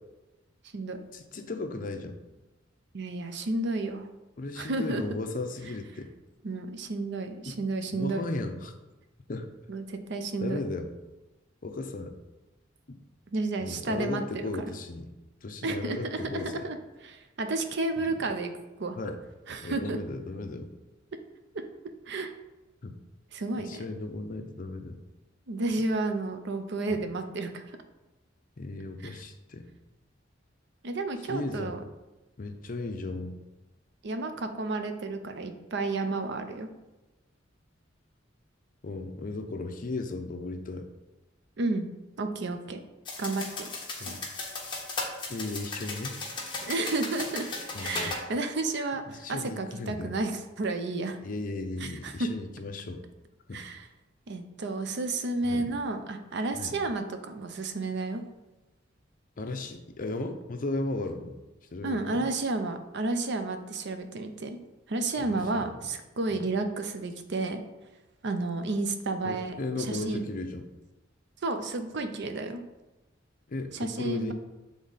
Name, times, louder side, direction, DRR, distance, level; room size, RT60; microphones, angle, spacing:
voice 1, 1.1-2.2 4.4-6.1 7.5-7.6 7.9-8.7 9.3-9.5 10.4-10.9 11.6-12.2 12.9-13.0 13.6-15.1 15.4-16.7 18.0-18.3 19.0-19.2 19.6-20.7 22.8-23.0 23.6-25.0 26.9-27.0 28.6-29.7 31.3-31.8 32.4-33.4 38.8-40.9 44.0-44.3 45.3-46.2 47.7-48.2 49.1-50.1 51.2-53.1 53.5-53.6 55.4-55.7 56.5-56.8 59.4-61.3 61.7-62.3 65.2-65.8 66.3-66.4 69.2-70.7 73.5-74.3, left 2 dB, 45° left, 6 dB, 0.6 m, -36 dB
voice 2, 2.9-4.1 4.6-5.0 6.4-8.2 9.7-10.6 13.3-14.7 15.6-16.8 17.0-18.5 18.8-19.0 19.5-20.0 22.1-22.3 23.3-23.8 25.5-27.6 29.0-29.1 30.8-31.8 34.0-36.7 41.6-41.9 42.2-42.8 43.2-43.7 44.0-44.2 46.7-47.5 47.8-50.3 50.6-51.2 51.8-52.3 53.5-53.8 54.3-58.2 61.8-64.6 64.9-67.6 68.2-70.2 71.4-72.6 73.7-74.3, right 2 dB, 65° right, 7 dB, 0.6 m, -31 dB
sound 1, 43.0-48.2, left 3 dB, 25° left, 1.1 m, -36 dB
7.1 x 3.6 x 4.0 m, 1.0 s
head